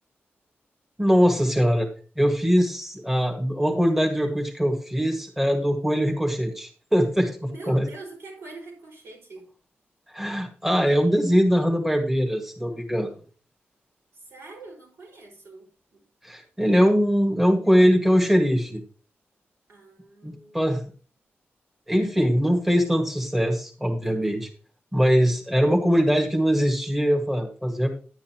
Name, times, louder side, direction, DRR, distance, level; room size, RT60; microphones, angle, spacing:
voice 1, 1.0-1.9 2.2-7.4 7.7-7.9 10.1-13.1 16.2-18.8 20.2-20.8 21.9-24.5 24.9-28.0, equal, 5° right, 1 dB, 1.9 m, -22 dB
voice 2, 7.5-9.5 14.1-16.0 19.7-20.9 24.0-24.4, right 2 dB, 80° right, 0 dB, 5.1 m, -44 dB
10.5 x 9.3 x 3.0 m, 0.38 s
cardioid pair, 85°, 4 cm